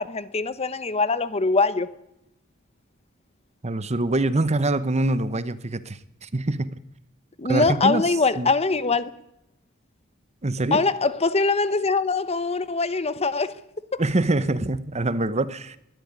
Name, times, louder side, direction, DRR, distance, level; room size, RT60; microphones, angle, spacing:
voice 1, 0.0-1.9 7.4-9.1 10.7-13.6 13.9-14.0, left 4 dB, 30° left, 0.9 m, -23 dB
voice 2, 3.6-6.7 7.5-8.0 8.4-8.5 10.4-10.8 14.0-15.8, right 2 dB, 30° right, 0.9 m, -24 dB
21.5 x 12.5 x 9.7 m
head